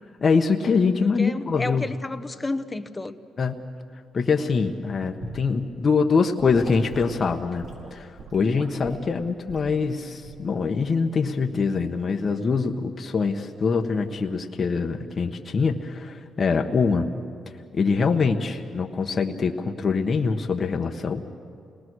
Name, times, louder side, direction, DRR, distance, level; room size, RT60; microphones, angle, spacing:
voice 1, 0.2-1.8 3.4-3.6 4.1-7.6 7.9-17.1 17.7-21.2, left 5 dB, 40° left, 4 dB, 1.3 m, -24 dB
voice 2, 1.0-3.1, left 2 dB, 15° left, 10 dB, 1.1 m, -31 dB
Gurgling / Sink (filling or washing) / Liquid, 5.2-5.5 6.4-9.1 9.5-9.7 10.2-10.5 11.4-11.7, right 2 dB, 60° right, 5.2 m, -40 dB
28.5 x 19.5 x 6.4 m, 2.5 s
cardioid pair, 90°, 0 cm